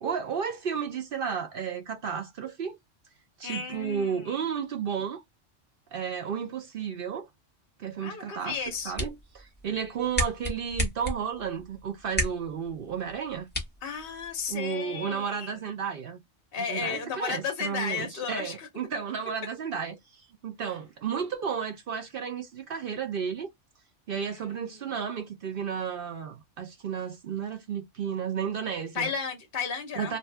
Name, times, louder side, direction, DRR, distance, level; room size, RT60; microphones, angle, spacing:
voice 1, 0.0-2.8 3.4-5.2 5.9-7.3 7.8-8.6 8.8-13.5 14.5-16.2 16.6-23.5 24.1-29.1 30.0-30.2, right 7 dB, 60° right, 0.7 m, -33 dB
voice 2, 3.4-4.4 8.0-8.9 13.8-15.5 16.5-18.7 24.1-24.8 28.9-30.2, left 6 dB, 55° left, 0.8 m, -34 dB
sound 1, 8.5-14.6, equal, 10° left, 1.0 m, -35 dB
2.6 x 2.2 x 3.2 m
omnidirectional pair, 1.3 m